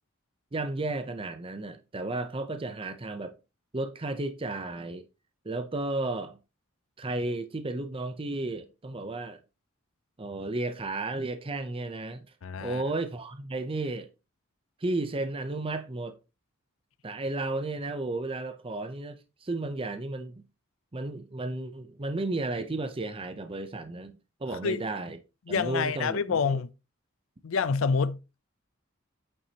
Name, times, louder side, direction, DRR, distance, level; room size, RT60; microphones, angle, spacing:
voice 1, 0.5-3.4 3.7-5.0 5.4-6.4 7.0-9.4 10.2-12.2 12.6-14.1 14.8-16.2 17.0-20.4 20.9-24.1 24.4-25.2 25.5-26.6, right 2 dB, 25° right, 0.6 m, -33 dB
voice 2, 12.4-12.8 24.6-24.8 25.5-26.7 27.4-28.4, left 5 dB, 75° left, 0.5 m, -27 dB
8.8 x 7.0 x 2.9 m
head